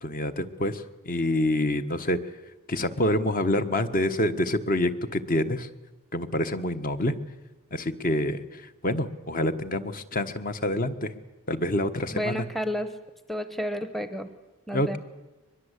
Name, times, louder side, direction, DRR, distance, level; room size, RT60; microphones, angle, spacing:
voice 1, 0.0-2.2 2.7-5.7 6.1-7.1 7.7-11.1 11.5-12.4 14.7-15.0, left 1 dB, 40° left, 10 dB, 1.3 m, -27 dB
voice 2, 12.1-12.9 13.3-14.3 14.7-15.0, equal, ahead, 10 dB, 0.9 m, -31 dB
23.0 x 21.5 x 8.3 m, 1.1 s
head